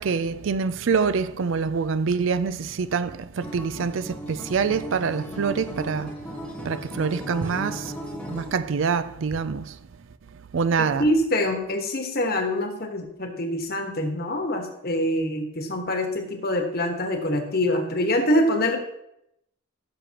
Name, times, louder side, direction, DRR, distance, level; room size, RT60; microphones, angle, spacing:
voice 1, 0.0-6.1 6.6-7.9 8.3-9.8 10.5-11.1, right 5 dB, 65° right, 0.4 m, -25 dB
Acoustic guitar, 3.4-8.5, equal, 5° left, 1.1 m, -36 dB
voice 2, 10.8-18.8, left 1 dB, 45° left, 1.3 m, -25 dB
15.0 x 6.9 x 2.9 m
head